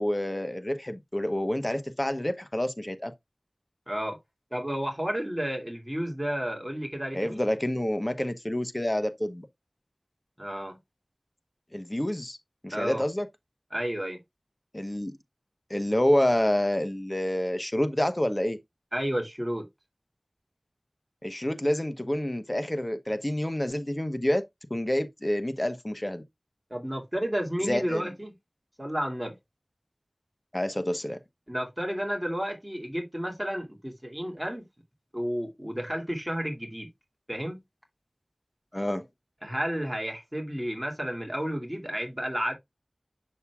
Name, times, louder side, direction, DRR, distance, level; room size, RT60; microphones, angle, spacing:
voice 1, 0.0-3.1 7.1-9.5 11.7-12.4 12.6-13.3 14.7-15.1 15.7-18.6 21.2-24.4 24.7-26.2 27.7-28.1 30.5-31.2 38.7-39.0, left 1 dB, 30° left, 1.1 m, -28 dB
voice 2, 3.9-4.2 4.5-7.4 10.4-10.8 12.7-13.0 13.7-14.2 18.9-19.7 26.7-28.3 28.8-29.4 31.5-34.7 35.1-36.9 37.3-37.6 39.4-42.5, equal, 15° right, 2.5 m, -31 dB
7.0 x 6.5 x 2.3 m
wide cardioid pair, 40°, 0 cm